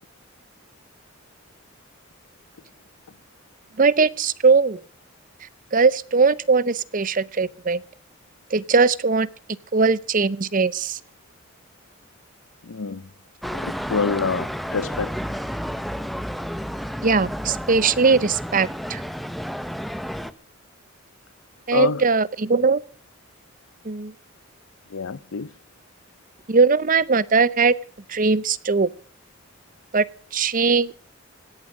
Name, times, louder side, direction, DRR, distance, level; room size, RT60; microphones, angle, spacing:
voice 1, 3.8-4.8 5.7-7.8 8.5-9.3 9.7-11.0 17.0-19.0 21.7-22.8 23.8-24.1 26.5-27.7 28.1-28.9 29.9-30.0 30.3-30.9, right 4 dB, 40° right, 0.6 m, -20 dB
voice 2, 12.6-13.1 13.6-15.2 21.7-22.0 24.9-25.5, left 5 dB, 75° left, 0.6 m, -26 dB
sound 1, 13.4-20.3, equal, ahead, 0.8 m, -31 dB
17.5 x 11.0 x 6.4 m
head